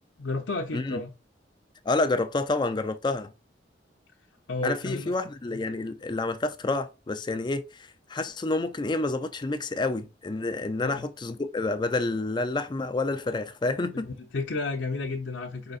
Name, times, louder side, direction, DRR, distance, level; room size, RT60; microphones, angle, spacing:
voice 1, 0.2-1.1 4.5-5.1 5.5-5.6 10.8-11.1 13.9-15.8, left 3 dB, 90° left, 0.7 m, -32 dB
voice 2, 1.9-3.3 4.6-14.1, left 2 dB, 25° left, 0.4 m, -29 dB
5.0 x 3.9 x 2.4 m
head